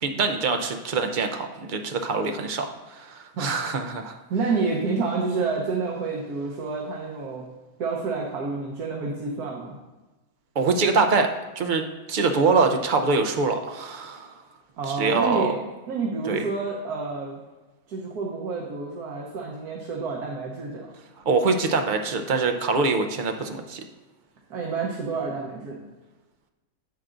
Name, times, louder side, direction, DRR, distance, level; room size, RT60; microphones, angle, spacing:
voice 1, 0.0-4.2 10.6-11.3 11.6-14.3 14.9-15.6 16.3-16.4 21.3-23.8, right 4 dB, 65° right, 5 dB, 0.4 m, -24 dB
voice 2, 4.3-7.5 7.8-9.8 14.8-15.6 15.9-17.4 17.9-20.9 24.5-25.8, right 4 dB, 90° right, -2 dB, 1.5 m, -29 dB
10.5 x 7.8 x 2.5 m, 1.2 s
omnidirectional pair, 1.6 m